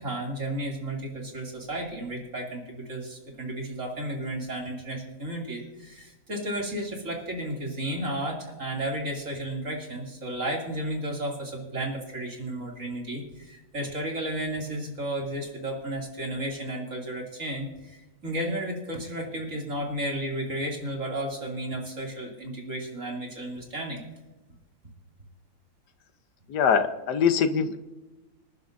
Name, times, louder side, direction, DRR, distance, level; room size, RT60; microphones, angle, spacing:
voice 1, 0.0-24.0, right 1 dB, 50° right, -1 dB, 3.2 m, -33 dB
voice 2, 26.5-27.8, left 6 dB, 85° left, 8 dB, 1.5 m, -23 dB
26.5 x 10.5 x 2.6 m, 1.1 s
omnidirectional pair, 1.7 m